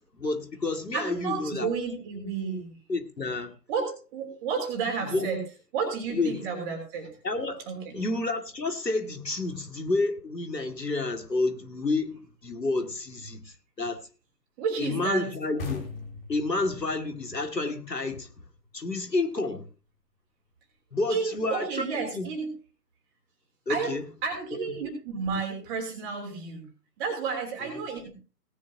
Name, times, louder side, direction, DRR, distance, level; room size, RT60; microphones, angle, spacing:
voice 1, 0.2-1.7 2.9-3.5 5.1-5.3 6.1-6.4 7.2-7.6 7.9-14.0 14.8-15.8 16.3-18.3 18.7-19.7 20.9-22.3 23.7-24.0, left 3 dB, 80° left, 2.4 m, -30 dB
voice 2, 0.9-2.7 3.7-5.4 5.7-7.1 7.7-8.0 14.6-15.3 21.1-22.5 23.7-24.0 24.2-26.7 27.0-28.1, right 5 dB, 15° right, 3.4 m, -31 dB
sound 1, 15.6-19.0, left 3 dB, 35° left, 3.4 m, -41 dB
18.0 x 10.5 x 2.8 m
figure-of-eight pair, 150°, 49 cm